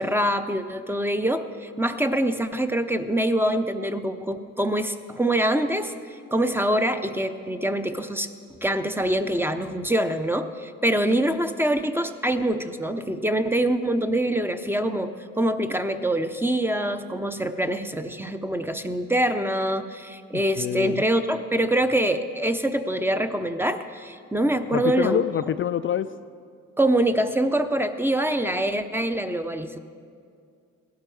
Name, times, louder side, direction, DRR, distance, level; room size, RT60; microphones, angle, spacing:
voice 1, 0.0-5.9 6.3-8.3 8.6-25.2 26.8-29.8, right 1 dB, 5° right, 9 dB, 0.7 m, -25 dB
voice 2, 20.3-21.1 24.7-26.1, left 9 dB, 40° left, 10 dB, 0.4 m, -26 dB
17.0 x 12.0 x 4.8 m, 2.3 s
cardioid pair, 90°, 30 cm